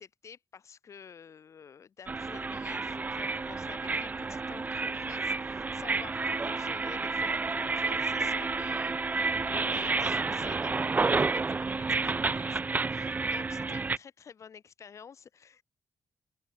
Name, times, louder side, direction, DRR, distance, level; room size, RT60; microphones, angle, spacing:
voice 1, 0.0-15.6, left 7 dB, 55° left, 3.5 m, -50 dB
sound 1, 2.1-14.0, right 3 dB, 25° right, 1.4 m, -30 dB
open air
wide cardioid pair, 130°, 6 cm